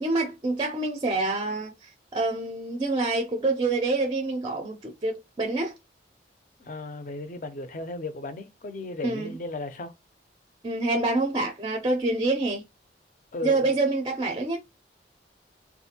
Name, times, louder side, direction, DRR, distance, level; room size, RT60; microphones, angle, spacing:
voice 1, 0.0-5.7 9.0-9.4 10.6-12.6 13.4-14.6, right 2 dB, 25° right, 0.4 m, -27 dB
voice 2, 6.6-9.9 13.3-13.7, left 2 dB, 45° left, 0.4 m, -35 dB
3.5 x 2.5 x 2.7 m
head